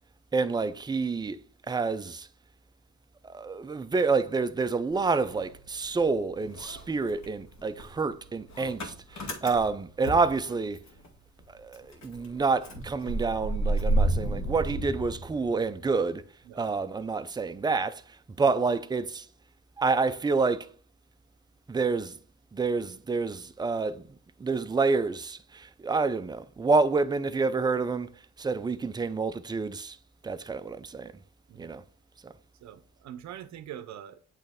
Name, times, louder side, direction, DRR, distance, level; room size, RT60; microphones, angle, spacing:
voice 1, 0.3-1.4 1.7-2.3 3.2-10.8 11.6-16.2 16.5-18.0 18.4-19.2 19.8-20.7 21.7-22.1 22.5-24.0 24.4-28.1 28.4-30.0 30.2-31.1 31.6-31.8 32.2-32.3, right 4 dB, 15° right, 0.4 m, -28 dB
Motor vehicle (road) / Engine starting, 4.9-6.1 6.4-11.1 11.4-11.5 11.7-15.8, right 1 dB, 60° left, 1.6 m, -31 dB
voice 2, 32.6-34.4, right 10 dB, 65° right, 0.7 m, -44 dB
8.3 x 3.2 x 3.5 m
cardioid pair, 90°, 30 cm